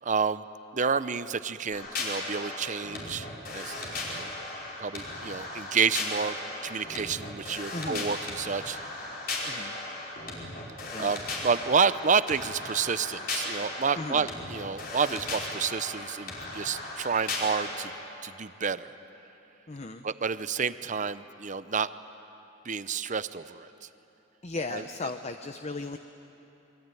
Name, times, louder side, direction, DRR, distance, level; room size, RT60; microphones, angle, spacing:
voice 1, 0.0-0.5 0.7-3.3 3.5-4.3 4.8-6.4 6.6-8.8 11.0-17.9 18.2-18.9 20.0-21.9 22.6-23.7 24.7-24.8, right 5 dB, 40° right, 14 dB, 0.7 m, -29 dB
sound 1, 1.7-17.8, left 2 dB, 50° left, 5.3 m, -36 dB
voice 2, 7.7-8.1 9.5-9.8 10.9-11.1 13.9-14.3 19.7-20.1 24.4-26.0, left 3 dB, 35° left, 8 dB, 0.8 m, -36 dB
28.0 x 23.0 x 9.2 m, 3.0 s
head